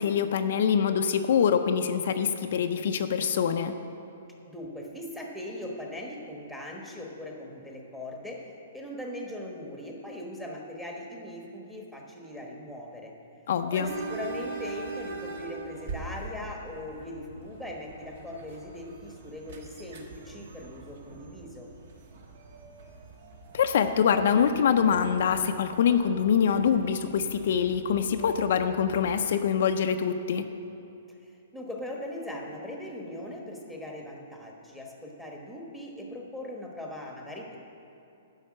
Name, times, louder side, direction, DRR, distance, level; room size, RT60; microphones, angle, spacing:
voice 1, 0.0-3.7 13.5-13.9 23.5-30.5, left 7 dB, 60° left, 7 dB, 0.5 m, -24 dB
voice 2, 4.5-8.4 8.7-13.1 13.7-21.7 31.2-37.6, left 1 dB, ahead, -1 dB, 1.2 m, -40 dB
sound 1, 13.8-29.2, right 3 dB, 55° right, 1.3 m, -43 dB
11.0 x 5.7 x 7.6 m, 2.8 s
hypercardioid pair, 160°, 0 cm